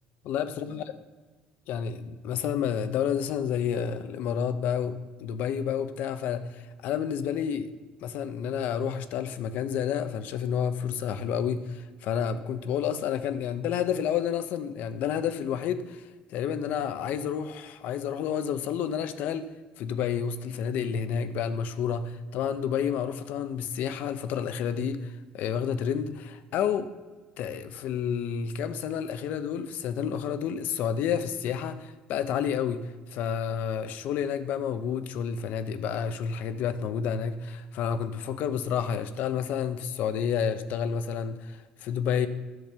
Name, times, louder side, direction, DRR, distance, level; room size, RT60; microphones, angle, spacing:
voice 1, 0.2-0.8 1.7-5.0 5.2-7.7 8.0-19.5 19.8-26.9 27.4-42.3, left 8 dB, 70° left, 12 dB, 0.7 m, -30 dB
11.0 x 5.2 x 6.8 m, 1.3 s
cardioid pair, 135°, 3 cm